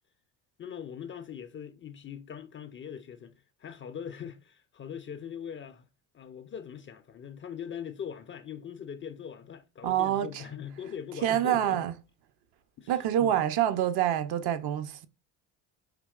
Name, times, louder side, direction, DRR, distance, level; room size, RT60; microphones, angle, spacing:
voice 1, 0.6-5.9 6.1-11.8 12.8-12.9 13.2-13.4, left 8 dB, 30° left, 0.4 m, -41 dB
voice 2, 9.8-10.4 11.2-11.9 12.9-15.1, right 11 dB, 60° right, 0.6 m, -26 dB
5.1 x 2.8 x 2.2 m
hypercardioid pair, 65°, 44 cm